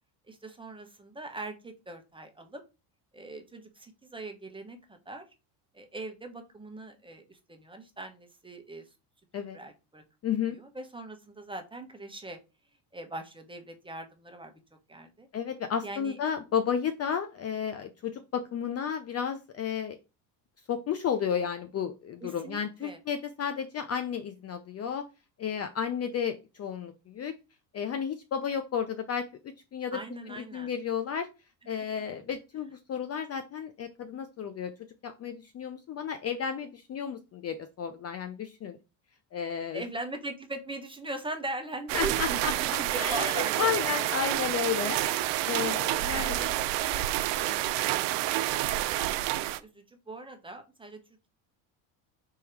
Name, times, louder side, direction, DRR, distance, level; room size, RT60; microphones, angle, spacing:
voice 1, 0.3-2.6 3.1-5.3 5.7-8.9 9.5-10.0 10.5-12.4 12.9-14.5 14.9-15.3 15.8-16.2 22.2-23.0 29.9-30.7 39.7-44.1 46.1-51.0, right 2 dB, 10° right, 5 dB, 1.0 m, -41 dB
voice 2, 10.2-10.6 15.3-20.0 20.7-25.1 25.4-27.3 27.7-30.0 30.3-31.3 31.7-34.7 35.0-38.8 39.3-39.8 41.9-42.5 42.9-46.4, left 7 dB, 35° left, 8 dB, 0.5 m, -32 dB
sound 1, 41.9-49.6, right 15 dB, 65° right, 0.6 m, -29 dB
3.7 x 3.0 x 4.5 m, 0.28 s
supercardioid pair, 95°, 47 cm